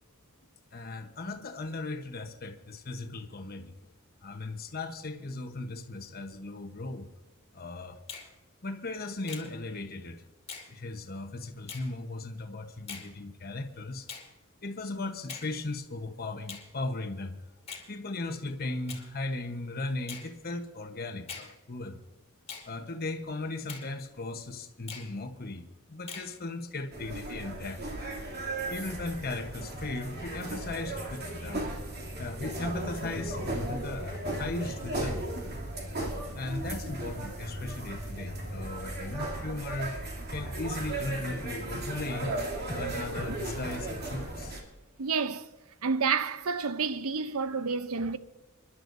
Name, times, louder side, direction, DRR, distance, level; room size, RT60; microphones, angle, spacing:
voice 1, 0.7-3.7 4.2-7.1 7.5-8.0 8.6-10.2 10.7-14.1 14.6-17.4 17.9-22.0 22.6-27.8 28.7-31.7 32.2-35.2 36.3-39.9 40.3-42.4 42.7-44.5, left 2 dB, 45° left, 1.1 m, -37 dB
Finger snapping, 8.1-8.3 9.3-9.5 10.5-10.7 11.7-11.9 12.9-13.1 14.1-14.3 15.3-15.5 16.5-16.7 17.7-17.9 18.9-19.1 20.1-20.3 21.3-21.5 22.5-22.7 23.7-23.9 24.9-25.1 26.1-26.3, left 5 dB, 30° left, 2.3 m, -42 dB
sound 1, 26.9-44.6, right 1 dB, 50° right, 2.9 m, -36 dB
voice 2, 45.0-45.5 45.8-48.2, right 5 dB, 90° right, 0.7 m, -29 dB
28.0 x 11.0 x 2.7 m
head